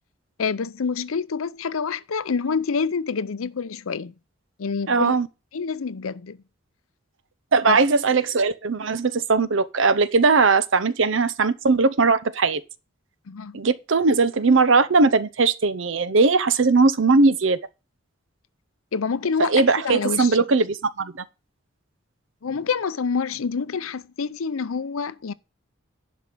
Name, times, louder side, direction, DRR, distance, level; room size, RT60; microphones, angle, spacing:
voice 1, 0.4-4.1 4.6-5.2 5.5-6.4 7.7-7.8 13.3-13.6 18.9-20.4 22.4-25.3, left 5 dB, 90° left, 0.6 m, -27 dB
voice 2, 4.9-5.3 7.5-12.6 13.5-17.6 19.4-21.2, right 4 dB, 70° right, 0.7 m, -19 dB
11.0 x 5.3 x 6.1 m
head